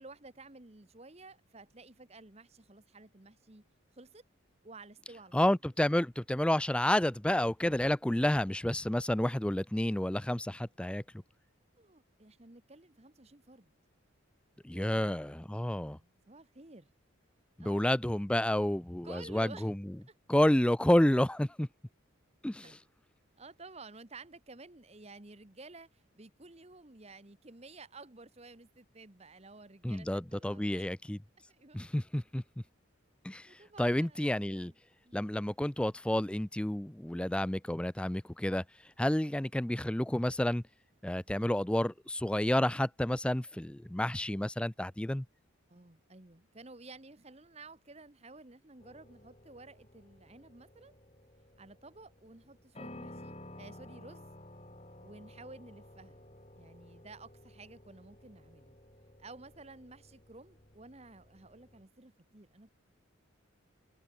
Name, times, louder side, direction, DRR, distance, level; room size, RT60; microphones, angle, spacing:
voice 1, 0.0-3.6 3.9-4.2 4.6-5.4 11.8-13.7 14.7-16.9 17.6-17.9 19.0-19.7 20.1-20.2 22.6-22.8 23.4-30.8 31.5-31.8 33.4-34.8 35.0-35.3 45.7-51.0 51.6-54.3 55.0-56.2 56.5-58.8 59.2-62.7, right 3 dB, 30° right, 1.3 m, -53 dB
voice 2, 5.3-11.0 14.6-16.0 17.6-19.8 20.3-21.7 22.4-22.8 29.8-31.2 31.7-32.4 33.2-33.5 33.8-34.7 35.1-38.6 39.0-40.6 41.0-45.2, left 1 dB, 5° left, 0.4 m, -30 dB
sound 1, 48.8-61.8, left 1 dB, 30° left, 6.6 m, -54 dB
head